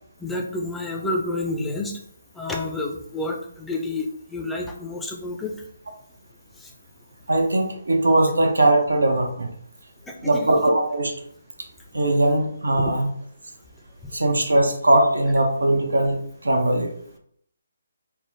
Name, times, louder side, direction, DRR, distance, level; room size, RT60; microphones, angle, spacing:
voice 1, 0.2-2.0 2.3-5.5 6.6-6.7 10.1-10.5 12.8-12.9, left 2 dB, 5° left, 0 dB, 0.4 m, -29 dB
voice 2, 7.3-9.5 10.2-11.1 11.9-13.1 14.1-16.2 16.4-16.9, right 1 dB, 90° right, 3 dB, 0.7 m, -20 dB
3.3 x 2.0 x 3.1 m, 0.66 s
figure-of-eight pair, 150°, 0 cm